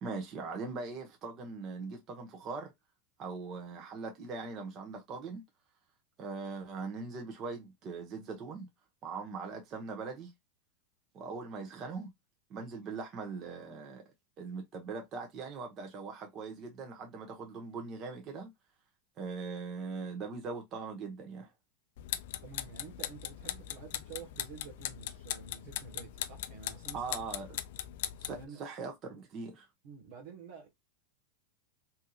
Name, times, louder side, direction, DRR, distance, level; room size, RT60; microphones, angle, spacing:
voice 1, 0.0-2.7 3.2-5.4 6.2-8.7 9.0-10.3 11.1-12.1 12.5-14.0 14.4-18.5 19.2-21.5 26.9-27.5 28.2-29.7, right 4 dB, 35° right, 1.1 m, -41 dB
sound 1, 22.0-28.4, left 12 dB, 70° left, 0.4 m, -40 dB
voice 2, 22.4-27.0 28.3-28.6 29.8-30.7, right 6 dB, 65° right, 1.2 m, -49 dB
3.5 x 2.9 x 2.4 m
hypercardioid pair, 120°, 0 cm